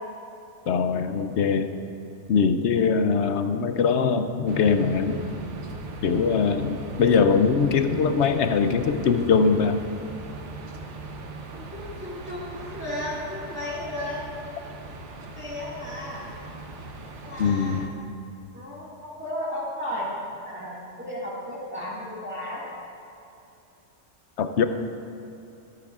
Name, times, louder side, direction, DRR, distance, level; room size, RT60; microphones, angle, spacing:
voice 1, 0.7-1.7 2.3-5.2 6.0-9.8 17.4-17.9 24.4-24.6, left 5 dB, 75° left, 8 dB, 0.9 m, -22 dB
sound 1, 4.5-17.9, right 3 dB, 80° right, 1.2 m, -39 dB
voice 2, 11.5-14.3 15.4-16.3 17.2-17.9 18.5-20.1 20.4-22.7, left 1 dB, 10° right, -8 dB, 1.9 m, -34 dB
23.5 x 9.5 x 2.4 m, 2.8 s
omnidirectional pair, 1.2 m